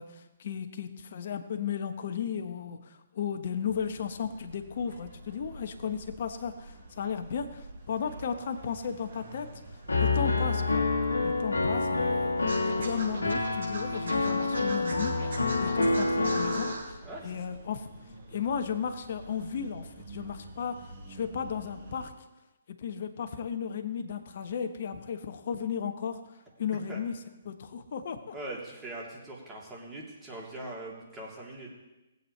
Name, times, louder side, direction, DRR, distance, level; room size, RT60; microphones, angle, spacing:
voice 1, 0.0-9.5 10.0-10.9 11.2-12.3 12.6-15.2 15.6-17.0 17.2-17.9 18.3-22.1 22.8-26.2 26.6-27.2 27.4-28.3, left 7 dB, 55° left, 7 dB, 1.1 m, -35 dB
sound 1, 3.6-22.1, right 2 dB, 50° right, 3.8 m, -48 dB
Piano, 9.9-16.7, left 3 dB, 85° left, 1.5 m, -27 dB
Scratching (performance technique), 12.5-16.8, right 3 dB, 70° right, 4.9 m, -39 dB
voice 2, 28.3-31.7, right 1 dB, 15° right, -4 dB, 3.1 m, -41 dB
19.0 x 8.2 x 3.3 m, 1.0 s
figure-of-eight pair, 135°, 0 cm